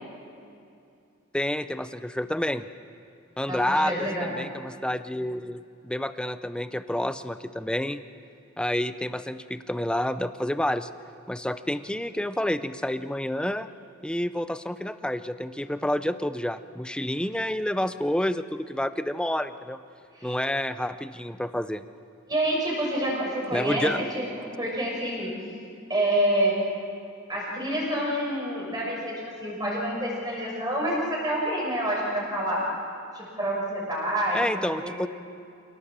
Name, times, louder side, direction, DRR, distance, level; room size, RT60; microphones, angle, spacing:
voice 1, 1.3-2.6 3.4-8.0 8.6-10.9 11.3-13.7 14.0-19.8 20.2-21.8 23.5-24.1 34.3-35.1, left 1 dB, 5° left, 12 dB, 0.5 m, -29 dB
voice 2, 3.5-4.3 20.1-20.4 22.3-25.3 25.9-26.5 27.3-32.6 33.1-34.5 34.8-35.0, right 1 dB, 20° right, -3 dB, 6.3 m, -28 dB
27.5 x 18.0 x 7.4 m, 2.5 s
head